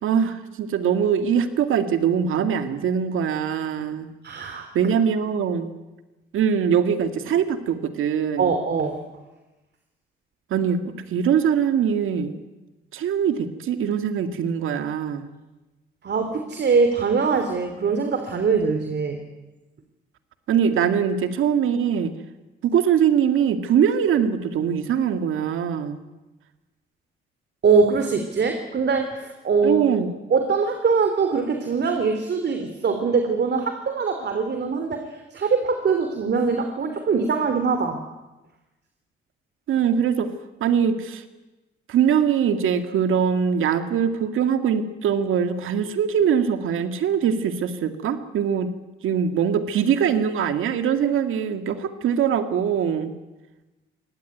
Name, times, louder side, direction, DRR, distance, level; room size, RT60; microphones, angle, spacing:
voice 1, 0.0-4.1 4.7-5.7 6.3-8.5 10.5-10.8 11.1-12.4 12.9-15.3 20.5-22.1 22.6-26.0 29.6-30.1 39.7-40.3 40.6-41.2 41.9-48.7 49.0-53.1, right 8 dB, 75° right, 8 dB, 2.2 m, -22 dB
voice 2, 4.2-4.9 8.4-9.0 16.0-19.2 27.6-29.8 30.3-38.0, right 5 dB, 55° right, 6 dB, 3.1 m, -22 dB
23.5 x 18.5 x 9.3 m, 1.1 s
supercardioid pair, 65°, 21 cm